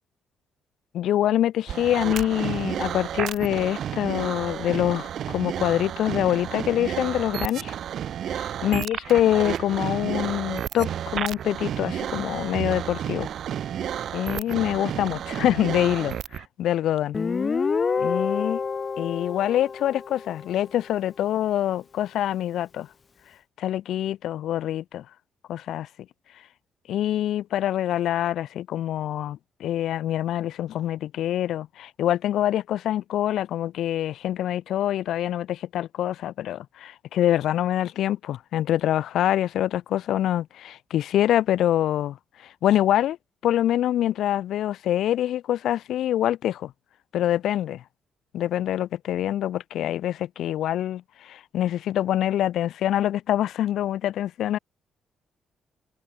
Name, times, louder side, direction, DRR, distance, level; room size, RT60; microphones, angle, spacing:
voice 1, 0.9-7.7 8.3-13.3 14.1-17.2 18.0-18.6 19.0-22.9 23.6-25.0 25.5-25.9 26.9-43.2 43.4-46.7 47.1-47.8 48.3-54.6, left 12 dB, 75° left, 0.6 m, -25 dB
sound 1, 1.7-16.4, right 10 dB, 65° right, 0.4 m, -31 dB
Guitar, 17.1-20.6, left 5 dB, 40° left, 0.8 m, -27 dB
cardioid pair, 90°, 0 cm